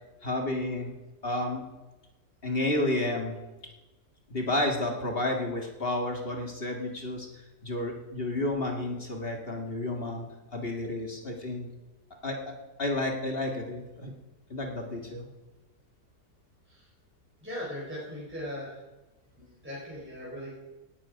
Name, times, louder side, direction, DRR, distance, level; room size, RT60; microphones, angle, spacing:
voice 1, 0.2-0.9 1.2-1.6 2.4-3.4 4.3-7.3 7.6-11.7 12.2-12.4 12.8-14.1 14.5-15.3, left 1 dB, 35° left, 2 dB, 2.1 m, -31 dB
voice 2, 17.4-18.8 19.4-20.6, equal, 5° right, -6 dB, 4.0 m, -39 dB
17.5 x 11.0 x 5.1 m, 1.1 s
omnidirectional pair, 1.7 m